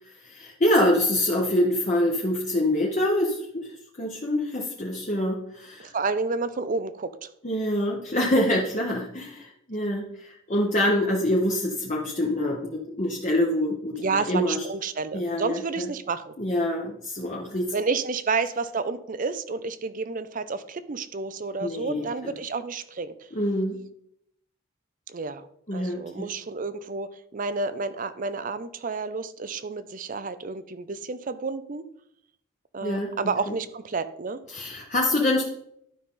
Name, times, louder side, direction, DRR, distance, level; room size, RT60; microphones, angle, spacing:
voice 1, 0.2-3.7 4.0-5.9 7.4-14.6 15.1-15.9 16.4-17.7 21.6-22.3 23.3-23.8 25.7-26.3 32.8-33.1 33.5-33.6 34.5-35.4, left 1 dB, 35° left, -2 dB, 1.1 m, -25 dB
voice 2, 5.8-7.3 14.0-16.3 17.7-23.1 25.1-31.8 32.7-34.4, right 4 dB, 40° right, 13 dB, 0.5 m, -30 dB
12.0 x 5.5 x 3.8 m, 0.74 s
head